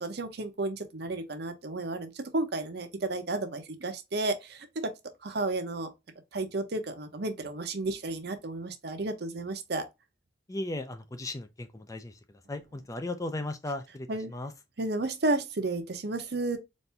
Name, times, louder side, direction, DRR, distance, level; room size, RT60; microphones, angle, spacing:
voice 1, 0.0-4.9 5.2-5.9 6.3-9.8 14.1-14.3 14.8-16.6, right 2 dB, 60° right, 0.8 m, -32 dB
voice 2, 10.5-12.2 12.5-14.5, left 2 dB, 20° left, 0.4 m, -36 dB
4.2 x 2.6 x 3.3 m
head